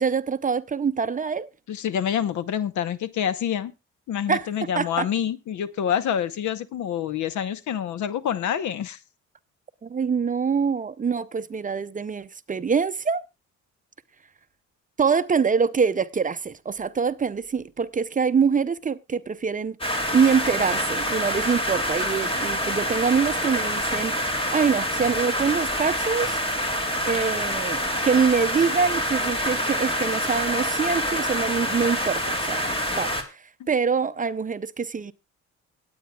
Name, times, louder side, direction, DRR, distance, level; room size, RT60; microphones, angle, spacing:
voice 1, 0.0-1.5 4.3-4.5 4.8-5.1 9.8-13.2 15.0-19.8 20.1-24.2 24.5-26.4 27.1-35.1, right 6 dB, 25° right, 0.6 m, -24 dB
voice 2, 1.7-3.7 4.1-9.0 33.6-33.7, left 9 dB, 70° left, 0.9 m, -27 dB
sound 1, 19.8-33.2, equal, 20° left, 2.2 m, -26 dB
24.5 x 8.7 x 2.3 m
cardioid pair, 90°, 30 cm